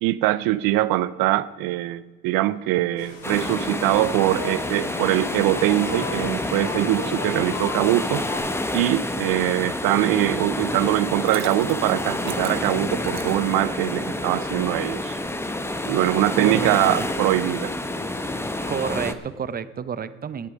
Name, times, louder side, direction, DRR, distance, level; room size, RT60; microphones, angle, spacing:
voice 1, 0.0-8.3 8.7-15.2 15.8-17.7, right 15 dB, 70° right, 17 dB, 0.6 m, -22 dB
sound 1, 3.0-8.4, left 3 dB, 65° left, 4.7 m, -36 dB
sound 2, 3.2-19.1, left 1 dB, 5° left, 0.9 m, -28 dB
Liquid, 11.0-14.1, right 9 dB, 45° right, 1.1 m, -39 dB
voice 2, 16.4-17.1 18.7-20.5, right 7 dB, 25° right, 16 dB, 0.7 m, -29 dB
18.0 x 8.1 x 5.1 m, 1.4 s
supercardioid pair, 85°, 37 cm